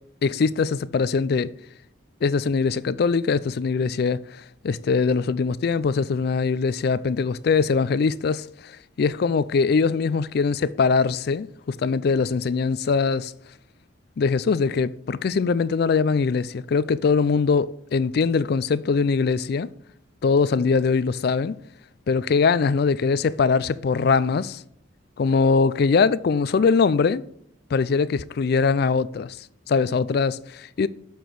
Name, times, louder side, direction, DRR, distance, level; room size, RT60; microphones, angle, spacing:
voice 1, 0.2-1.5 2.2-13.3 14.2-19.7 20.2-21.6 22.1-24.6 25.2-27.2 27.7-30.9, left 5 dB, 55° left, 0.3 m, -22 dB
7.1 x 5.9 x 4.8 m
head